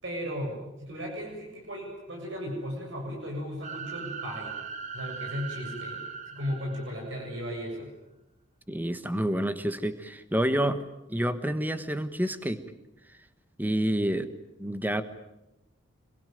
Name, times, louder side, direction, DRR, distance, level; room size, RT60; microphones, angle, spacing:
voice 1, 0.0-4.6 4.9-6.0 6.3-7.9, equal, 65° right, 0 dB, 7.5 m, -36 dB
sound 1, 3.6-7.4, right 6 dB, 35° right, 1.4 m, -39 dB
voice 2, 8.7-10.8 11.1-12.6 13.6-14.3 14.6-15.0, right 1 dB, 10° right, 11 dB, 1.3 m, -28 dB
26.0 x 22.5 x 9.3 m, 0.96 s
head